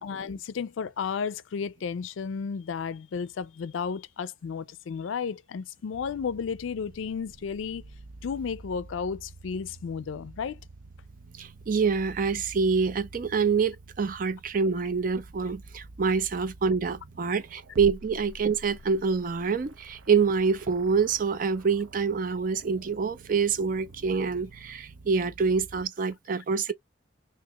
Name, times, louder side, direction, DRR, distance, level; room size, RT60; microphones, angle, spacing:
voice 1, 0.0-7.8 8.2-10.6, left 6 dB, 80° left, 0.4 m, -33 dB
sound 1, 5.9-25.9, right 2 dB, 85° right, 0.7 m, -48 dB
voice 2, 11.4-26.7, right 5 dB, 45° right, 0.4 m, -26 dB
2.9 x 2.8 x 3.4 m
head